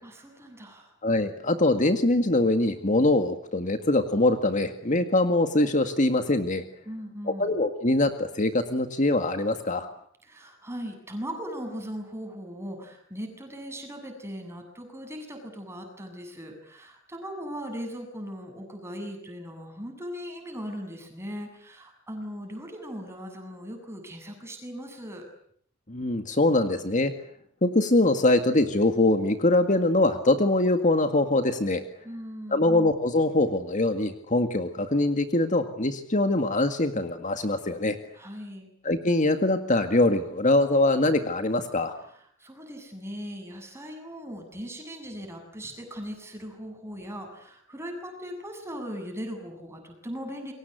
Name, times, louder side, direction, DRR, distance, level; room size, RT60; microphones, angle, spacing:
voice 1, 0.0-0.9 6.9-7.5 10.2-25.3 32.0-32.7 38.1-38.7 42.4-50.5, equal, 15° right, 4 dB, 7.7 m, -39 dB
voice 2, 1.0-6.6 7.4-9.9 25.9-27.1 27.6-31.8 32.5-38.0 38.8-41.9, left 2 dB, 40° left, 8 dB, 2.0 m, -23 dB
28.5 x 23.5 x 8.1 m, 0.65 s
head